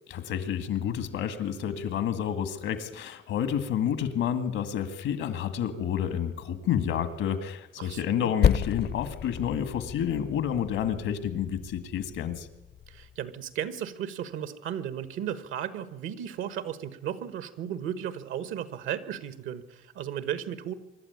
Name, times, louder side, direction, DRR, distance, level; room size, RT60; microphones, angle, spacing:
voice 1, 0.1-12.5, left 9 dB, 85° left, 11 dB, 2.0 m, -29 dB
voice 2, 7.8-8.3 12.9-20.7, right 10 dB, 90° right, 14 dB, 1.4 m, -35 dB
Percussion, 8.4-13.3, left 8 dB, 55° left, 0.6 m, -31 dB
24.5 x 12.0 x 9.6 m, 1.1 s
cardioid pair, 90°, 20 cm